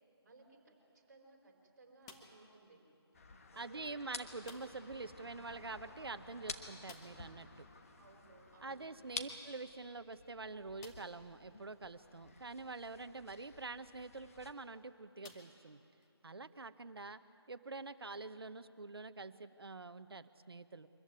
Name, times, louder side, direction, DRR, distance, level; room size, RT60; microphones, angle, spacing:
voice 1, 0.2-2.8 3.5-4.2 8.0-9.2, right 3 dB, 40° right, 1 dB, 4.3 m, -61 dB
sound 1, 2.0-2.6 4.4-5.0 5.2-5.3 5.7-5.8 6.8-7.4 9.1-9.2 9.9-10.0 10.8-11.3 12.0-12.1 14.1-14.3 15.2-16.1, left 5 dB, 10° left, 0.8 m, -57 dB
sound 2, 3.1-14.5, left 4 dB, 30° left, 1.3 m, -52 dB
voice 2, 3.6-7.7 8.6-15.8 16.2-17.2 17.5-20.9, right 3 dB, 65° right, 12 dB, 1.0 m, -46 dB
24.0 x 14.5 x 9.5 m, 2.7 s
figure-of-eight pair, 160°, 14 cm